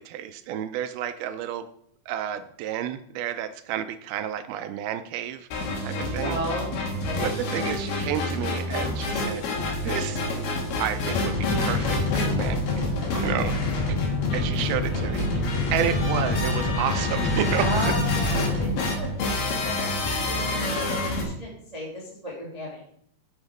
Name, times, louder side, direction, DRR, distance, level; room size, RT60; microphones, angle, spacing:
voice 1, 0.0-1.7 2.1-6.4 7.2-9.5 9.8-10.2 10.8-13.5 13.9-14.1 14.3-17.9 18.3-18.6, right 10 dB, 80° right, 11 dB, 2.3 m, -31 dB
sound 1, 5.5-21.2, left 2 dB, 80° left, 3.8 m, -28 dB
voice 2, 5.6-6.7 7.0-7.7 12.9-13.4 17.5-22.8, equal, 10° right, -5 dB, 2.0 m, -36 dB
sound 2, 11.1-18.8, left 3 dB, 65° left, 4.4 m, -27 dB
9.6 x 7.3 x 4.9 m, 0.68 s
omnidirectional pair, 4.5 m